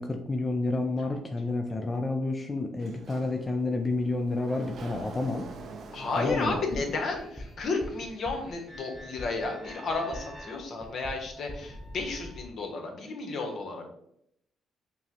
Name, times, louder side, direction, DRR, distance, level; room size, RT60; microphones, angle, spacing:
voice 1, 0.0-5.5 6.2-6.6, left 2 dB, 20° left, 4 dB, 0.4 m, -30 dB
Sliding door, 2.7-7.7, right 3 dB, 60° right, 0.4 m, -46 dB
voice 2, 5.9-13.9, left 3 dB, 60° left, 3 dB, 0.8 m, -32 dB
sound 1, 6.3-12.5, left 1 dB, 5° left, 0.7 m, -44 dB
5.2 x 2.0 x 2.9 m, 0.75 s
cardioid pair, 90°, 0 cm